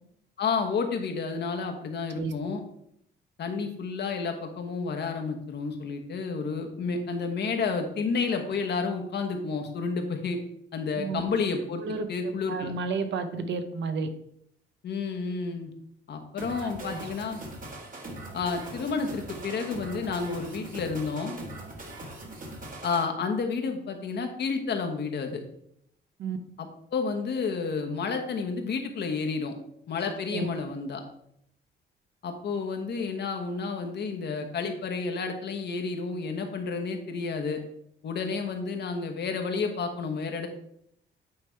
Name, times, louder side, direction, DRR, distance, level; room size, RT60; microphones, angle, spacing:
voice 1, 0.4-2.6 3.4-10.4 10.7-11.8 12.1-12.7 14.8-15.7 16.1-17.4 18.3-21.4 22.8-25.4 26.6-29.5 29.9-31.0 32.2-37.6 38.0-40.5, left 4 dB, 55° left, 5 dB, 1.2 m, -30 dB
voice 2, 11.8-14.1 16.6-17.0 26.2-26.4 30.3-30.5, right 4 dB, 65° right, 8 dB, 0.9 m, -32 dB
sound 1, 16.4-23.0, right 1 dB, 45° right, 1.8 m, -41 dB
8.6 x 3.4 x 4.6 m, 0.72 s
cardioid pair, 90°, 20 cm